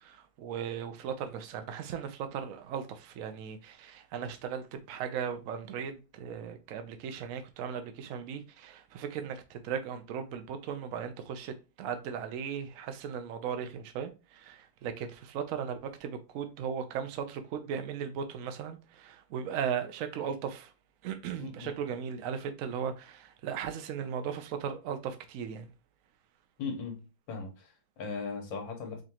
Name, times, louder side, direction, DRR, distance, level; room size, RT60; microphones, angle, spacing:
voice 1, 0.0-20.7 21.0-25.7, right 7 dB, 65° right, 0.8 m, -37 dB
voice 2, 21.4-21.7 26.6-29.0, left 4 dB, 85° left, 1.7 m, -38 dB
5.0 x 2.4 x 2.8 m
omnidirectional pair, 2.0 m